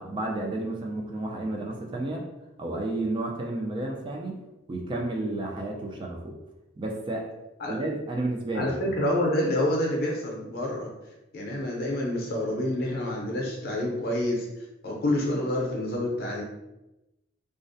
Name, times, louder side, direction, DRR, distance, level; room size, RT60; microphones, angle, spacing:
voice 1, 0.0-2.2 2.6-4.4 4.7-6.3 6.8-7.3 7.7-8.7, right 2 dB, 25° right, 0 dB, 0.3 m, -31 dB
voice 2, 8.5-10.9 11.3-16.4, left 1 dB, 55° left, -1 dB, 0.6 m, -28 dB
2.4 x 2.0 x 2.6 m, 0.96 s
head